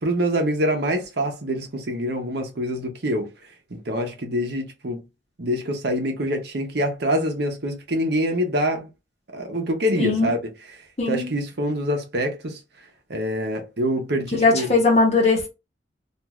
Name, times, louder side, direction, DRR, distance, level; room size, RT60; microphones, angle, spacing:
voice 1, 0.0-3.3 3.7-5.0 5.4-8.9 9.3-10.4 11.1-12.6 13.1-14.7, equal, 60° right, 0.8 m, -25 dB
voice 2, 10.0-10.3 11.0-11.3 14.3-15.5, left 3 dB, 35° left, 1.1 m, -19 dB
2.5 x 2.4 x 3.0 m
head